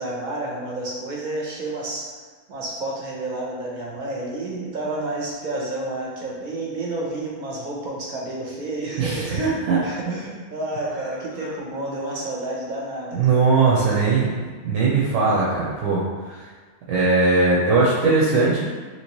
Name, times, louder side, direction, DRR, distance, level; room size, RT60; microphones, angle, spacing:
voice 1, 0.0-2.1 2.5-13.5 13.8-14.4 15.2-15.5, right 2 dB, 50° right, -4 dB, 0.7 m, -30 dB
voice 2, 9.0-9.8 13.1-14.3 14.6-16.4 16.9-18.6, right 3 dB, 85° right, -6 dB, 1.0 m, -19 dB
3.0 x 2.8 x 2.9 m, 1.5 s
omnidirectional pair, 1.3 m